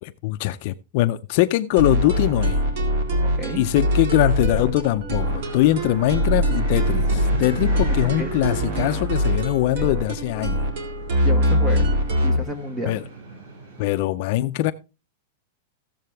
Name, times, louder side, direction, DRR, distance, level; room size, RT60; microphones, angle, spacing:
voice 1, 0.0-2.6 3.6-10.6 12.9-13.0 13.8-14.7, left 16 dB, 40° left, 0.4 m, -22 dB
sound 1, 1.8-12.4, equal, 50° right, 2.0 m, -23 dB
voice 2, 3.2-3.6 8.0-8.3 11.2-11.9 12.2-13.0, left 1 dB, 10° right, 1.1 m, -31 dB
sound 2, 5.2-14.0, right 3 dB, 70° right, 4.8 m, -38 dB
14.5 x 7.5 x 3.3 m
supercardioid pair, 175°, 0 cm